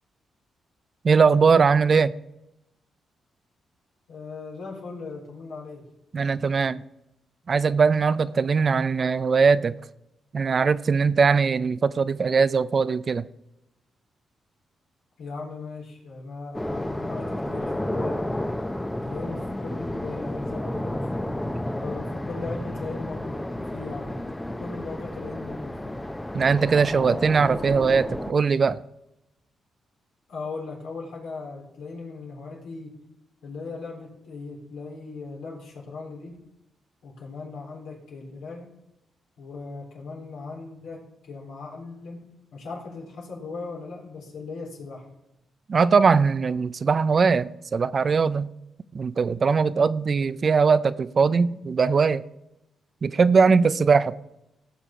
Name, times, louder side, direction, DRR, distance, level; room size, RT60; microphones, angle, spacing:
voice 1, 1.0-2.1 6.1-6.8 7.5-9.7 10.3-13.2 26.3-28.8 45.7-48.5 48.9-52.2 53.0-54.2, right 5 dB, 50° right, 0.5 m, -20 dB
voice 2, 4.1-5.9 15.2-18.6 19.0-21.1 21.8-26.0 30.3-33.0 33.4-36.4 37.0-38.7 39.4-42.2 42.5-45.1, left 3 dB, 85° left, 3.8 m, -38 dB
sound 1, 16.5-28.3, left 1 dB, 10° left, 0.8 m, -31 dB
16.5 x 6.7 x 4.4 m
supercardioid pair, 65°, 0 cm